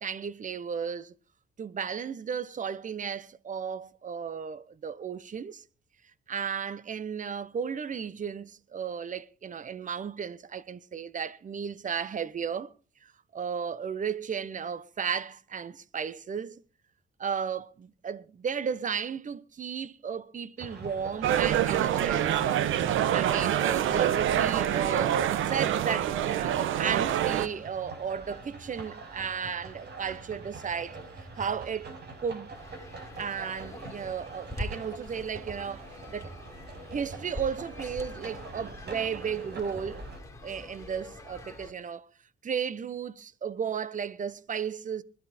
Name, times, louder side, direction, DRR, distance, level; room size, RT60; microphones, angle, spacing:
voice 1, 0.0-1.1 1.6-5.6 6.3-12.7 13.0-16.6 17.2-22.4 23.1-25.2 25.5-31.0 31.4-31.9 32.2-32.6 33.2-36.3 36.9-40.0 40.4-42.1 42.4-45.0, right 7 dB, 40° right, 1.0 m, -34 dB
sound 1, 20.6-40.2, right 3 dB, 55° right, 5.8 m, -44 dB
sound 2, 21.2-27.5, right 10 dB, 85° right, 1.1 m, -26 dB
sound 3, 32.5-41.7, left 1 dB, 15° left, 3.5 m, -44 dB
21.0 x 12.5 x 4.3 m
cardioid pair, 90°, 20 cm